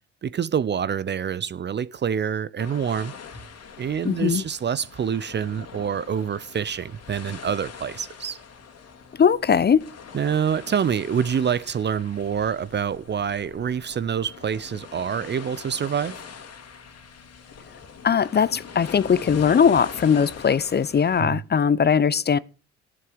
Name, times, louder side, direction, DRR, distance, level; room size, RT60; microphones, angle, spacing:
voice 1, 0.2-3.1 3.8-8.4 10.1-16.2 21.2-21.4, right 7 dB, 30° right, 0.7 m, -26 dB
sound 1, 2.6-21.2, left 6 dB, 45° left, 2.5 m, -42 dB
voice 2, 4.0-4.4 9.2-9.8 18.0-22.4, left 7 dB, 30° left, 0.9 m, -20 dB
16.0 x 11.0 x 5.2 m
figure-of-eight pair, 55°, 35 cm